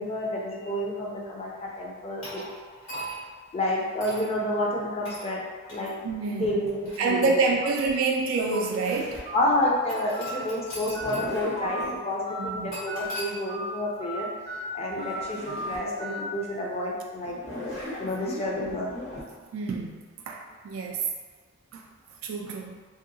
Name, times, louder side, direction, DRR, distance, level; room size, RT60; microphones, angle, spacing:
voice 1, 0.0-2.4 3.5-5.4 5.7-5.9 6.3-7.4 9.3-14.3 14.7-17.4 18.0-18.9, left 1 dB, 30° left, -3 dB, 0.5 m, -29 dB
sound 1, 2.2-3.4 4.0-4.3 5.1-5.3 5.7-5.9 6.6-7.8 8.5-8.6 9.9-11.3 11.6-11.7 12.7-13.3, right 1 dB, 80° left, 1.3 m, -40 dB
voice 2, 6.0-6.5 7.0-9.2 12.4-12.7 19.5-20.0 20.3-21.0 21.7-21.8 22.2-22.8, right 4 dB, 85° right, 2 dB, 0.3 m, -27 dB
Zipper (clothing), 6.7-9.4 10.7-12.0 14.6-14.7 14.9-15.9 16.4-16.5 17.2-19.2, left 1 dB, 55° left, 0.9 m, -39 dB
Telephone, 9.3-9.4 10.1-10.3 10.9-11.1 11.6-11.8 12.3-12.5 12.9-13.1 13.5-13.7 14.0-14.2 14.5-14.6 15.0-15.2 15.5-15.7 16.0-16.2, left 1 dB, 30° right, 0.5 m, -36 dB
2.7 x 2.6 x 2.6 m, 1.5 s
head